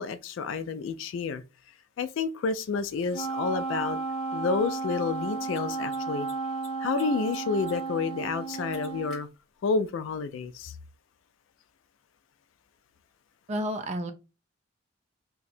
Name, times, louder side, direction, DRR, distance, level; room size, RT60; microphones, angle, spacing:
voice 1, 0.0-1.4 2.0-4.0 4.3-6.3 6.8-9.3 9.6-10.8, left 4 dB, 75° left, 0.3 m, -30 dB
Mechanisms, 3.0-3.1 5.4-5.6 5.9-6.0 6.2-7.0 7.3-7.7 8.0-8.1 8.5-9.2, left 1 dB, 5° left, 1.5 m, -50 dB
Wind instrument woodwind instrument, 3.1-9.2, right 4 dB, 30° left, 0.7 m, -33 dB
voice 2, 13.5-14.1, equal, 35° right, 0.5 m, -30 dB
2.7 x 2.2 x 4.0 m
head